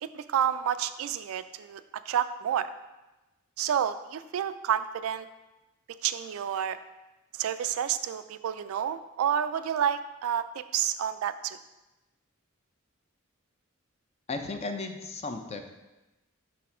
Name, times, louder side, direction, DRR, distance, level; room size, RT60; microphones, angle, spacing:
voice 1, 0.0-2.7 3.6-5.3 6.0-6.8 7.3-11.6, right 9 dB, 75° right, 13 dB, 0.3 m, -29 dB
voice 2, 14.3-15.7, left 3 dB, 30° left, 6 dB, 0.5 m, -35 dB
5.6 x 4.2 x 4.3 m, 1.1 s
head